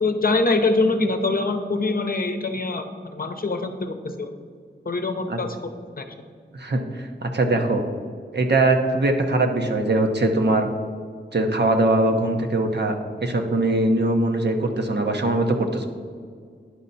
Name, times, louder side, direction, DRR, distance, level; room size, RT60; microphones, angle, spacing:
voice 1, 0.0-2.9 3.1-4.3 4.8-5.7 6.0-6.1, left 3 dB, 50° left, 7 dB, 0.7 m, -24 dB
voice 2, 6.5-7.8 8.3-10.7 11.3-15.8, right 2 dB, 65° right, 4 dB, 0.9 m, -21 dB
10.0 x 5.5 x 4.1 m, 2.1 s
wide cardioid pair, 80°, 19 cm